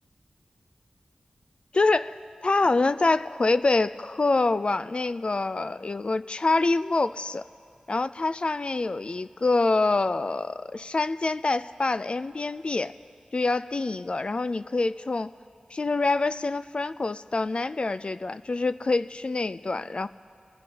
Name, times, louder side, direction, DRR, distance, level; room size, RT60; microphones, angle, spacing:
voice 1, 1.7-7.4 7.9-12.9 13.3-15.3 15.7-20.1, left 3 dB, 50° left, 13 dB, 0.3 m, -26 dB
25.0 x 16.0 x 2.8 m, 2.3 s
wide cardioid pair, 55°, 2 cm